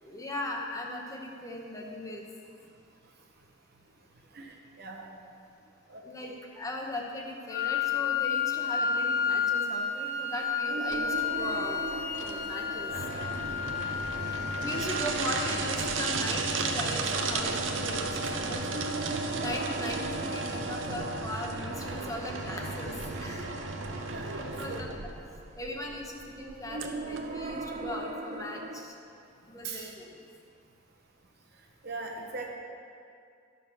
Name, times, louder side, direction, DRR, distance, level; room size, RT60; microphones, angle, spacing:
voice 1, 0.0-2.3 6.0-11.8 12.2-13.0 14.6-18.9 19.4-23.5 24.4-24.9 25.6-29.0 29.5-30.1, left 1 dB, 15° left, 0 dB, 0.8 m, -38 dB
voice 2, 4.3-5.1 5.9-6.4 24.0-24.8 29.6-29.9 31.8-32.5, right 3 dB, 55° right, 0 dB, 1.2 m, -41 dB
Wind instrument woodwind instrument, 7.5-15.5, left 6 dB, 50° left, 0.8 m, -31 dB
sound 1, 10.7-28.9, right 3 dB, 35° right, 0.4 m, -42 dB
sound 2, 10.9-27.9, right 3 dB, 75° right, 0.7 m, -34 dB
12.0 x 5.4 x 6.1 m, 2.4 s
head